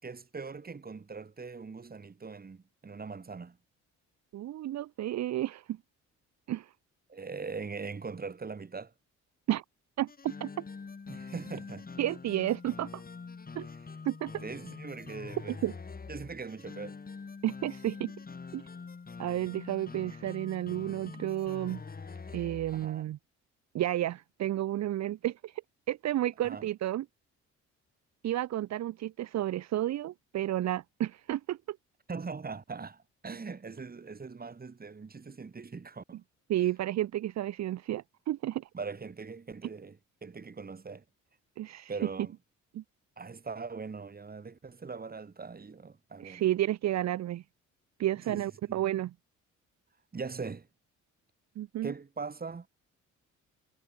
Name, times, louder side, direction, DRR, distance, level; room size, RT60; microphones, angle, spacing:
voice 1, 0.0-3.6 7.1-8.9 11.1-11.9 14.4-15.6 16.1-17.0 22.7-23.0 26.4-26.7 32.1-36.2 38.7-41.0 41.9-42.3 43.2-46.5 48.3-48.8 50.1-50.7 51.8-52.7, right 4 dB, 30° right, 4.2 m, -41 dB
voice 2, 4.3-5.8 6.5-6.7 9.5-9.6 10.0-10.5 12.0-13.0 13.5-13.7 14.0-14.3 15.5-15.7 17.4-18.1 18.5-18.6 19.2-21.8 22.3-23.2 23.7-25.6 25.9-27.1 28.2-31.8 36.5-38.7 41.6-41.9 42.7-42.8 46.2-47.4 48.0-49.1 51.6-51.9, right 13 dB, 65° right, 0.8 m, -31 dB
sound 1, 10.1-22.9, left 4 dB, 30° left, 3.0 m, -45 dB
cardioid pair, 90°, 30 cm